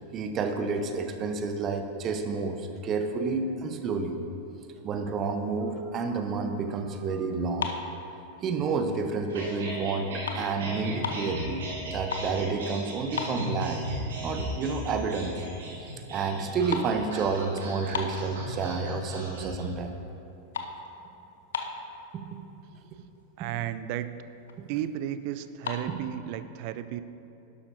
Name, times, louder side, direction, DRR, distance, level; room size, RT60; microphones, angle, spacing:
voice 1, 0.1-4.2 4.8-7.7 8.4-13.8 14.2-15.4 15.7-19.9 22.1-22.4 22.9-23.0 23.4-23.5 24.6-24.7 25.9-26.0, right 4 dB, 30° right, 6 dB, 0.8 m, -30 dB
sound 1, 7.4-8.8 9.3-9.6 9.9-11.3 11.8-12.4 12.7-12.8 13.1-14.0 14.4-14.5 15.1-15.2 15.4-15.8 16.0-18.8 19.3-19.7 20.0-22.0 22.7-22.8 23.0-23.2 23.7-23.8 24.0-24.7 25.4-25.8, left 5 dB, 65° left, 0.8 m, -36 dB
sound 2, 9.3-19.6, right 1 dB, 60° right, 2.1 m, -37 dB
voice 2, 23.4-24.2 24.7-27.0, right 11 dB, 45° right, 13 dB, 0.4 m, -33 dB
11.5 x 11.5 x 2.7 m, 2.9 s
figure-of-eight pair, 90°, 0 cm